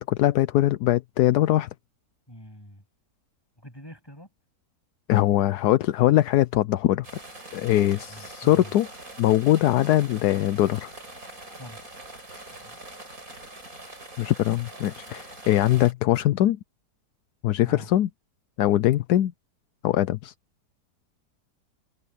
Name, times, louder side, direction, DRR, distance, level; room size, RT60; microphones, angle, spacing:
voice 1, 0.0-1.7 5.1-7.1 7.5-8.9 9.2-10.9 14.2-16.6 17.4-18.1 18.6-19.3 19.8-20.3, left 14 dB, 80° left, 1.1 m, -22 dB
voice 2, 2.3-2.8 3.6-4.3 7.6-8.7 11.5-11.9 12.5-12.8 17.6-17.9, equal, 15° left, 8.0 m, -45 dB
sound 1, 7.0-15.9, right 2 dB, 55° right, 8.0 m, -43 dB
omnidirectional pair, 1.7 m